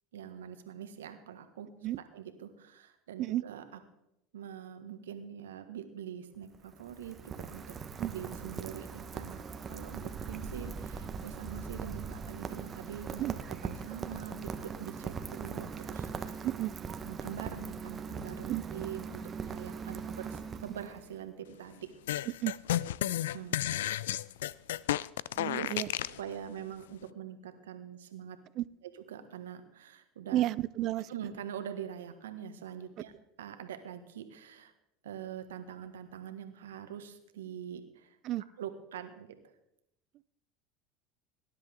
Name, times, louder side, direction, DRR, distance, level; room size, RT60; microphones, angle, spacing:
voice 1, 0.1-3.8 4.3-7.8 8.1-9.4 9.7-16.5 17.0-21.9 22.2-22.3 23.0-23.7 25.5-25.8 26.1-28.4 28.9-30.4 31.1-33.1 33.4-34.7 35.0-38.2 38.6-39.3, right 9 dB, 85° right, 8 dB, 1.6 m, -44 dB
Rain, 6.3-21.2, right 5 dB, 30° right, 1.2 m, -40 dB
sound 1, 22.1-26.2, left 13 dB, 80° left, 0.4 m, -32 dB
voice 2, 25.4-25.9 28.6-28.7 30.3-31.1 38.2-38.4, right 14 dB, 55° right, 20 dB, 0.5 m, -31 dB
19.0 x 11.0 x 3.7 m, 0.83 s
hypercardioid pair, 85°, 0 cm